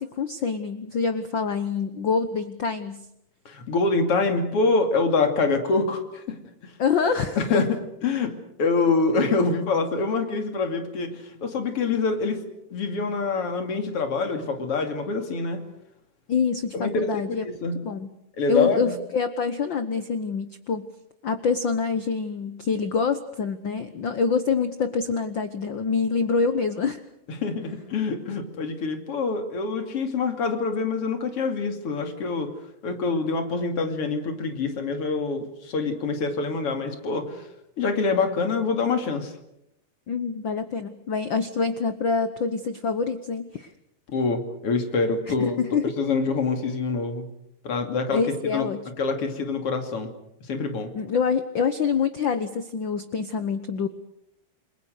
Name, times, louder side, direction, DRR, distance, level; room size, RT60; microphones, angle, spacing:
voice 1, 0.0-3.1 6.8-7.4 16.3-17.4 17.8-18.1 18.5-20.9 21.2-27.0 40.1-43.7 45.3-45.8 48.1-48.9 50.9-53.9, left 5 dB, 75° left, 11 dB, 1.1 m, -26 dB
voice 2, 3.4-6.4 6.6-6.7 7.4-7.7 8.0-12.4 12.7-15.6 16.7-17.8 18.4-19.0 27.4-32.5 32.8-37.4 37.8-39.3 44.1-45.6 45.8-47.3 47.6-48.2 48.5-48.7 49.0-50.1 50.5-50.9, left 4 dB, 45° left, 6 dB, 3.3 m, -25 dB
29.0 x 22.0 x 6.6 m, 0.79 s
omnidirectional pair, 3.7 m